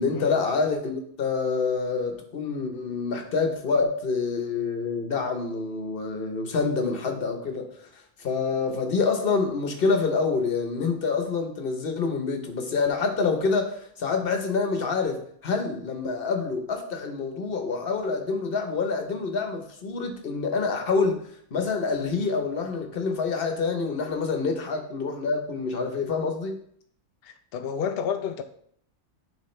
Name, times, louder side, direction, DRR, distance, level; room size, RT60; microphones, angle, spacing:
voice 1, 0.0-7.7 8.2-26.6, left 4 dB, 45° left, 1.0 m, -27 dB
voice 2, 27.2-28.4, left 7 dB, 80° left, 0.5 m, -30 dB
10.5 x 3.5 x 3.2 m
omnidirectional pair, 1.6 m